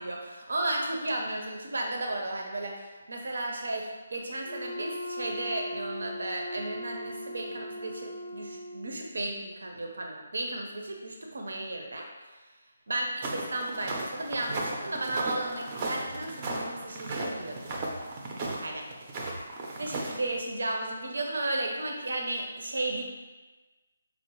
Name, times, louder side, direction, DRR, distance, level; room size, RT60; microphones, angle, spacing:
voice 1, 0.0-12.1 12.9-17.6 18.6-18.9 19.8-23.0, right 2 dB, 80° right, 1 dB, 0.6 m, -34 dB
Wind instrument woodwind instrument, 4.4-9.2, equal, 30° left, 0.4 m, -39 dB
sound 1, 13.2-20.4, right 2 dB, 25° right, 0.4 m, -35 dB
4.9 x 2.0 x 3.0 m, 1.2 s
hypercardioid pair, 165°, 0 cm